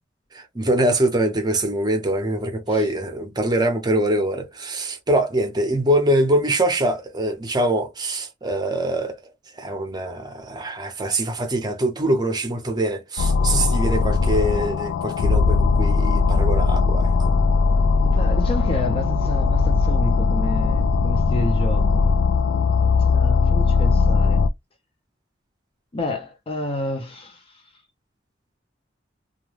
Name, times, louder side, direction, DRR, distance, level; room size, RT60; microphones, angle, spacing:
voice 1, 0.3-9.2 9.5-17.4, right 1 dB, 20° right, 0.7 m, -23 dB
sound 1, 13.2-24.5, left 4 dB, 85° left, 0.3 m, -19 dB
voice 2, 18.0-22.1 23.0-24.5 25.9-27.7, left 1 dB, 30° left, 0.6 m, -30 dB
2.3 x 2.2 x 3.1 m
head